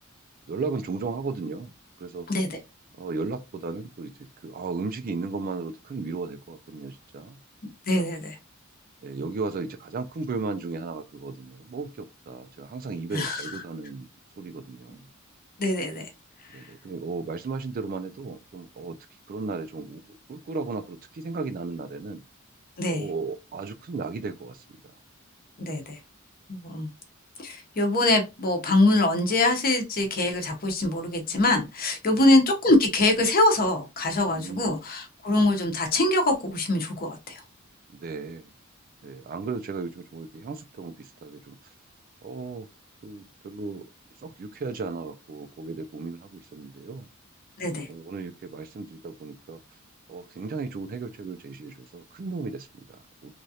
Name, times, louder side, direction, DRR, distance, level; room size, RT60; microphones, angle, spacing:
voice 1, 0.5-1.7 2.0-2.3 3.0-7.4 7.9-8.1 9.0-14.1 14.4-15.0 16.5-19.0 19.3-22.2 22.9-24.6 32.1-32.3 34.3-34.7 37.9-38.5 39.0-41.5 42.2-42.7 43.0-43.9 44.2-47.1 47.9-49.6 50.1-53.3, right 4 dB, 40° right, 0.3 m, -35 dB
voice 2, 2.3-2.6 7.9-8.4 13.1-13.5 15.6-16.1 22.8-23.1 25.6-26.0 26.5-26.9 27.4-37.4 47.6-47.9, left 2 dB, 45° left, 0.8 m, -23 dB
3.1 x 2.4 x 2.7 m
head